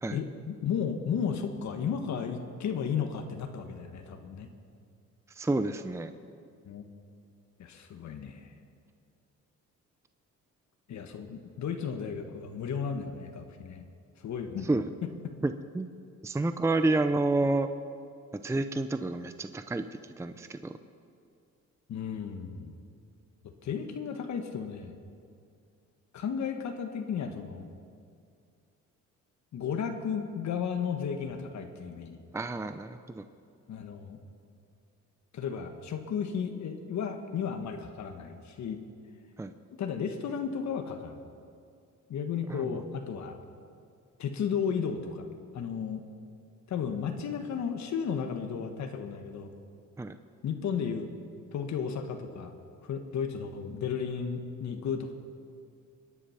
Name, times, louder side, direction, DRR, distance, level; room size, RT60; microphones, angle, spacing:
voice 1, 0.1-4.5 6.6-6.8 7.6-8.5 10.9-13.9 14.2-14.7 15.0-15.1 21.9-22.8 23.4-24.9 26.1-27.7 29.5-32.2 33.7-34.2 35.3-38.8 39.7-41.2 42.1-43.4 44.2-45.3 45.5-46.0 46.7-49.5 50.4-51.1 51.5-52.6 52.8-55.1, left 7 dB, 65° left, 5 dB, 1.4 m, -34 dB
voice 2, 5.3-6.1 14.6-14.9 15.4-15.9 16.2-17.7 18.3-20.7 32.3-33.2 39.4-39.5 42.5-42.8 50.0-50.1, right 2 dB, 10° right, 10 dB, 0.6 m, -29 dB
22.0 x 10.0 x 5.7 m, 2.3 s
cardioid pair, 90°, 30 cm